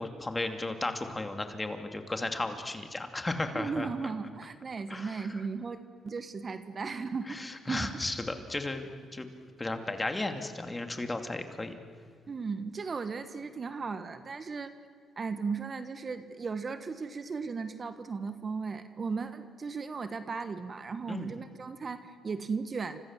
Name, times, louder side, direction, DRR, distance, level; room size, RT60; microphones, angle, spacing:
voice 1, 0.0-3.9 4.9-5.3 7.3-9.3 9.6-11.7 21.1-21.3, left 2 dB, 20° left, 6 dB, 2.6 m, -34 dB
voice 2, 3.5-7.4 7.7-7.9 12.3-14.7 15.2-23.0, right 5 dB, 40° right, 10 dB, 1.4 m, -36 dB
29.5 x 26.0 x 7.5 m, 2.1 s
cardioid pair, 90°, 0 cm